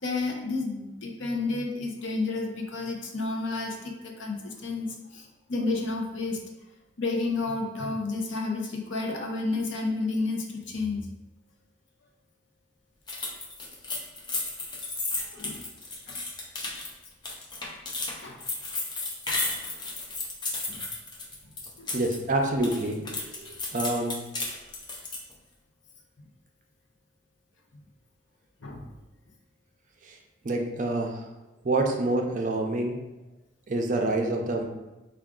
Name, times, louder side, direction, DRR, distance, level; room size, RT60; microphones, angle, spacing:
voice 1, 0.0-6.4 7.0-11.1 15.2-15.6 16.1-16.2 18.2-18.4 20.7-20.8 21.8-21.9 28.6-28.9, left 3 dB, 70° left, 1 dB, 0.7 m, -31 dB
sound 1, 13.1-22.2 22.5-25.3, left 2 dB, 20° left, 0.5 m, -34 dB
voice 2, 21.9-23.1 23.4-24.2 30.0-30.2 30.4-31.3 31.6-33.0 33.7-34.6, right 2 dB, 40° right, 2 dB, 0.4 m, -27 dB
4.8 x 2.3 x 3.6 m, 1.0 s
head